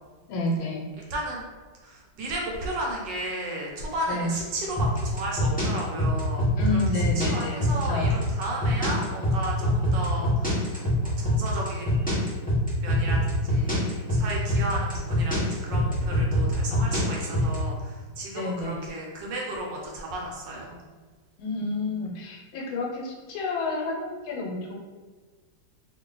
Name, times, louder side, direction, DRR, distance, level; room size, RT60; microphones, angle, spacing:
voice 1, 0.3-0.8 4.1-4.3 6.6-8.2 18.3-18.8 21.4-24.8, left 2 dB, 80° left, -1 dB, 1.5 m, -30 dB
voice 2, 1.1-1.4 1.8-6.8 7.2-12.2 12.8-20.8, right 1 dB, 70° right, -2 dB, 1.3 m, -34 dB
sound 1, 4.8-17.6, equal, 10° left, 0.4 m, -24 dB
3.2 x 2.6 x 3.7 m, 1.4 s
omnidirectional pair, 2.2 m